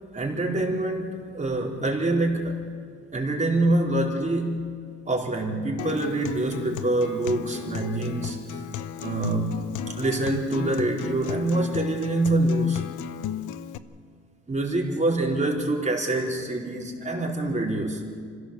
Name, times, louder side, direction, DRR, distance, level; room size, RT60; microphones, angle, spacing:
voice 1, 0.1-2.7 3.1-4.7 5.1-8.6 9.0-12.8 14.5-18.0, right 2 dB, 25° right, -1 dB, 4.6 m, -25 dB
Acoustic guitar, 5.8-13.8, left 11 dB, 85° left, 0.9 m, -35 dB
26.0 x 16.5 x 7.3 m, 2.2 s
cardioid pair, 90°, 30 cm